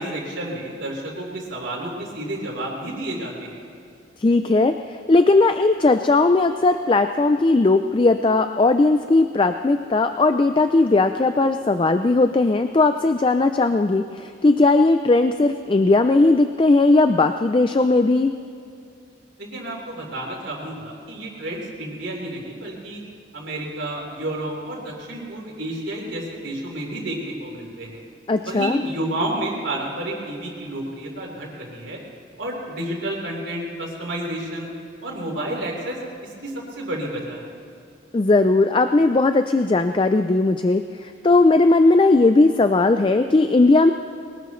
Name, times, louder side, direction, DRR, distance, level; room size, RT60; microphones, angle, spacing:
voice 1, 0.0-3.6 19.4-23.0 23.3-28.0 28.4-32.0 32.4-34.7 35.0-37.5, right 1 dB, 85° right, -2 dB, 3.9 m, -30 dB
voice 2, 4.2-18.3 28.3-28.8 38.1-43.9, left 3 dB, 25° left, 8 dB, 0.4 m, -18 dB
22.0 x 19.5 x 3.2 m, 2.5 s
head